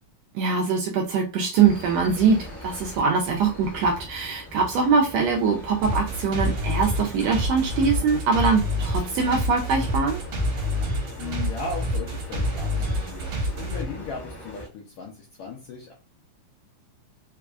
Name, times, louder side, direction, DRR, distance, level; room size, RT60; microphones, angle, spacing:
voice 1, 0.3-10.2, right 5 dB, 80° right, 1 dB, 1.5 m, -23 dB
sound 1, 1.6-14.7, equal, 40° left, 0.6 m, -40 dB
sound 2, 5.8-13.8, equal, 65° right, 2.0 m, -27 dB
voice 2, 11.2-15.9, left 4 dB, 75° left, -1 dB, 1.4 m, -37 dB
4.7 x 2.3 x 2.3 m, 0.35 s
omnidirectional pair, 3.4 m